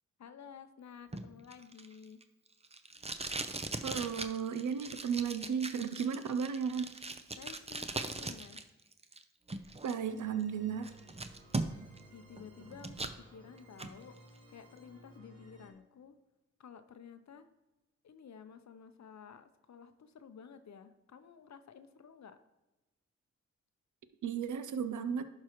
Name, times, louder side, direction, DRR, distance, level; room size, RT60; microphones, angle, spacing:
voice 1, 0.2-2.2 7.4-8.6 11.2-11.3 11.6-14.2 14.5-16.2 16.6-17.5 18.0-22.4, left 7 dB, 70° left, 10 dB, 0.6 m, -53 dB
Packing tape duct tape, 1.1-8.6 8.9-9.9 10.4-10.5 10.8-12.0 12.4-13.2 13.6-13.9, right 3 dB, 20° right, 0.6 m, -40 dB
voice 2, 3.8-6.9 9.8-10.9 24.2-25.3, right 7 dB, 85° right, 11 dB, 0.5 m, -34 dB
sound 1, 10.0-15.7, right 2 dB, 55° right, 1.2 m, -57 dB
11.5 x 4.7 x 3.0 m, 1.0 s
cardioid pair, 50°, 29 cm